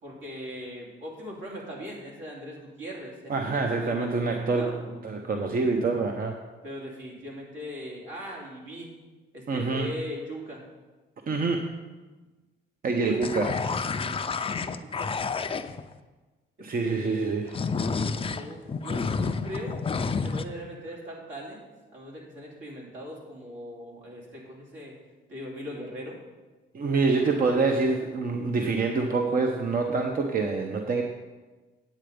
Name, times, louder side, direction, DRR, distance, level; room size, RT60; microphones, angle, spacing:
voice 1, 0.0-4.8 6.6-8.9 9.3-10.6 12.9-13.2 14.0-15.2 16.6-19.8 20.2-21.7 21.9-24.9 25.3-26.2 27.4-27.6, equal, 75° right, -3 dB, 3.0 m, -40 dB
voice 2, 3.3-6.4 9.5-9.9 11.3-11.7 12.8-13.7 16.6-17.6 26.7-31.0, right 4 dB, 45° right, 3 dB, 0.9 m, -26 dB
sound 1, 13.2-15.9 17.5-20.4, left 4 dB, 25° left, 0.5 m, -29 dB
9.3 x 7.8 x 5.1 m, 1.3 s
cardioid pair, 90°, 20 cm